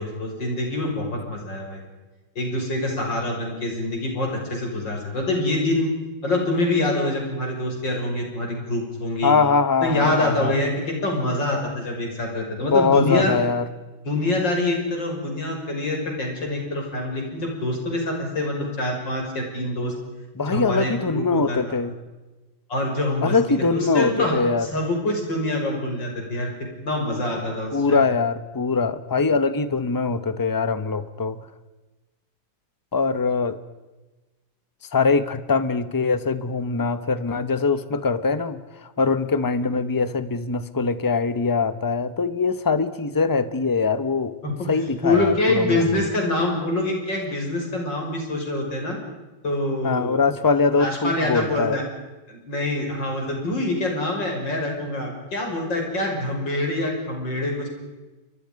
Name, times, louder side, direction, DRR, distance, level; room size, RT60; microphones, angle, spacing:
voice 1, 0.0-1.8 2.3-5.9 6.2-9.3 9.8-13.3 14.0-19.9 20.4-21.6 22.7-23.4 23.7-26.5 26.8-28.0 44.4-44.7 45.0-49.0 49.4-50.2 50.8-51.8 52.3-57.7, left 2 dB, 65° left, 0 dB, 6.9 m, -25 dB
voice 2, 9.2-10.5 12.6-13.7 20.4-21.9 23.2-24.7 27.7-31.4 32.9-33.6 34.9-38.6 39.0-44.3 44.7-45.8 49.8-51.8, left 4 dB, 25° left, 13 dB, 0.4 m, -22 dB
29.0 x 24.0 x 5.3 m, 1.2 s
omnidirectional pair, 2.1 m